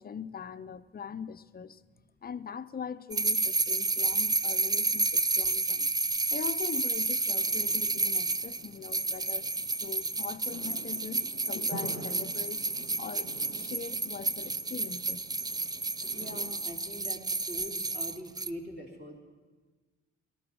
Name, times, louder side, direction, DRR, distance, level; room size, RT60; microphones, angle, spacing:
voice 1, 0.0-1.8 2.2-5.9 6.3-9.5 9.8-12.7 13.0-15.2, left 7 dB, 30° left, 0.6 m, -41 dB
sound 1, 3.1-18.5, right 3 dB, 15° right, 0.4 m, -31 dB
sound 2, 7.4-16.4, right 1 dB, 75° right, 6.0 m, -48 dB
voice 2, 16.1-19.2, equal, 35° right, 3.5 m, -43 dB
18.5 x 12.5 x 6.2 m
cardioid pair, 90°, 30 cm